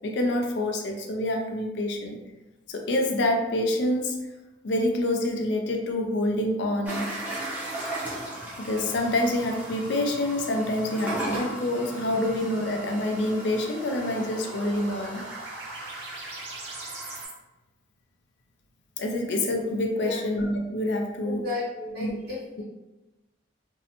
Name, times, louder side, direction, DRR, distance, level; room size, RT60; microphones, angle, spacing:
voice 1, 0.0-2.2 2.7-4.2 4.6-7.1 8.6-15.3 19.0-21.4 22.0-22.2, left 1 dB, 70° left, 2 dB, 0.4 m, -27 dB
sound 1, 6.9-17.3, right 1 dB, 10° right, 0.6 m, -37 dB
sound 2, 8.2-17.3, right 1 dB, 75° right, 0.6 m, -43 dB
voice 2, 21.2-22.6, left 3 dB, 55° right, -7 dB, 1.1 m, -33 dB
2.6 x 2.1 x 2.8 m, 1.1 s
head